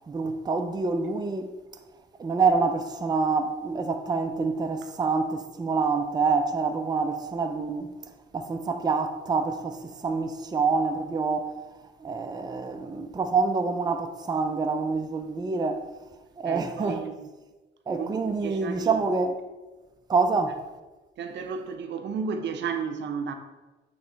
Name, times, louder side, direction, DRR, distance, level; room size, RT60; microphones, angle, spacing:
voice 1, 0.1-1.5 2.2-15.9 16.4-17.1 17.9-19.4 20.1-20.6, right 4 dB, 20° right, 0.5 m, -27 dB
voice 2, 16.4-17.3 18.0-19.0 21.2-23.3, right 6 dB, 65° right, 0.7 m, -33 dB
8.2 x 3.2 x 3.9 m
cardioid pair, 90°, 20 cm